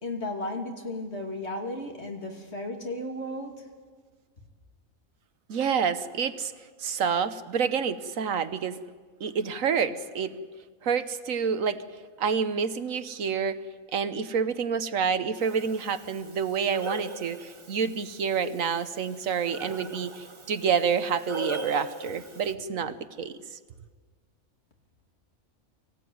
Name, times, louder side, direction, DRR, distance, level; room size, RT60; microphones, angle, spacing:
voice 1, 0.0-3.5, left 1 dB, 50° left, 2 dB, 3.1 m, -34 dB
voice 2, 5.5-6.5 6.8-8.8 9.2-10.3 10.8-11.8 12.2-13.6 13.9-23.6, right 6 dB, 70° right, 12 dB, 1.3 m, -28 dB
Breathing, 15.4-22.5, right 1 dB, 25° right, 0.8 m, -40 dB
24.0 x 16.0 x 9.3 m, 1.5 s
omnidirectional pair, 1.4 m